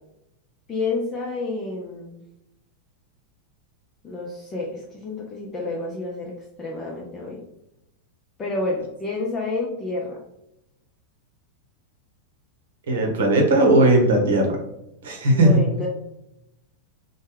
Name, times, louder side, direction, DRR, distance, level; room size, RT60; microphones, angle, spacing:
voice 1, 0.7-2.2 4.0-7.4 8.4-10.2 15.3-15.9, left 3 dB, 20° left, -3 dB, 0.5 m, -29 dB
voice 2, 12.9-14.5 15.0-15.6, right 1 dB, 60° right, 1 dB, 0.8 m, -17 dB
3.2 x 2.2 x 3.2 m, 0.85 s
figure-of-eight pair, 90°, 0 cm